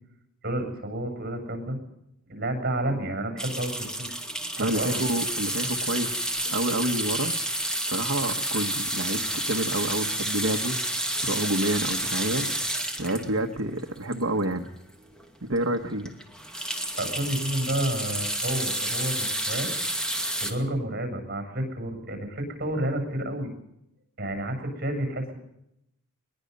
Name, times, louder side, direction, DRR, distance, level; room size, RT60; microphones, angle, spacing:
voice 1, 0.4-1.8 2.3-4.1 4.5-5.0 17.0-19.7 20.4-23.5 24.2-25.4, right 1 dB, 45° right, 5 dB, 7.5 m, -30 dB
sound 1, 3.4-14.7 15.2-15.3 15.5-15.7 16.0-20.5, right 1 dB, 5° left, 2.5 m, -30 dB
voice 2, 4.6-6.2 6.4-7.3 7.9-14.7 15.4-16.1, right 1 dB, 65° right, 3 dB, 1.4 m, -29 dB
22.5 x 21.5 x 5.5 m, 0.82 s
head